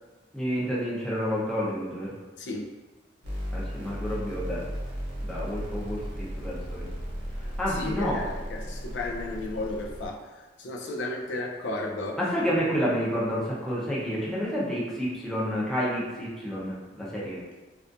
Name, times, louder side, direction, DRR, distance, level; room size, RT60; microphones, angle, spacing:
voice 1, 0.3-2.2 3.5-4.6 5.2-6.9 7.6-8.3 12.2-17.4, equal, 5° left, -7 dB, 0.5 m, -29 dB
sound 1, 3.2-10.1, equal, 75° right, 0.8 m, -35 dB
voice 2, 7.8-10.2 10.6-12.2, left 2 dB, 75° left, 2 dB, 0.4 m, -33 dB
2.3 x 2.3 x 2.5 m, 1.2 s
head